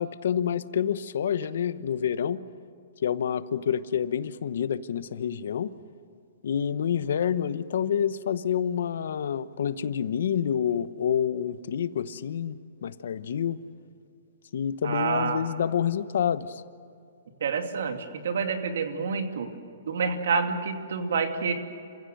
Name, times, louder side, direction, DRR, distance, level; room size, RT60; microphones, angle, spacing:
voice 1, 0.0-2.4 3.0-5.7 6.4-13.6 14.5-16.6, left 8 dB, 70° left, 15 dB, 1.0 m, -28 dB
voice 2, 14.8-15.4 17.4-19.5 19.9-21.5, right 5 dB, 70° right, 5 dB, 2.6 m, -28 dB
28.5 x 16.0 x 7.9 m, 2.5 s
hypercardioid pair, 160°, 0 cm